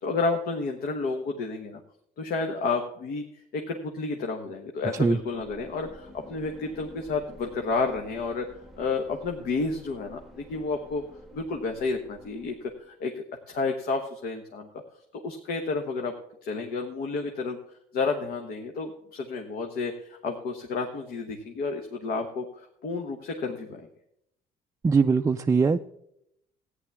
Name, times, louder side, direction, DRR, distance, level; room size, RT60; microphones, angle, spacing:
voice 1, 0.0-1.8 2.2-11.0 11.3-14.7 15.1-16.1 16.4-17.6 17.9-23.8, left 4 dB, 70° left, 3 dB, 1.3 m, -31 dB
sound 1, 5.1-12.9, left 1 dB, ahead, 0.9 m, -50 dB
voice 2, 24.8-25.8, right 5 dB, 20° right, 5 dB, 0.4 m, -21 dB
14.0 x 9.7 x 3.5 m, 0.76 s
cardioid pair, 110°, 17 cm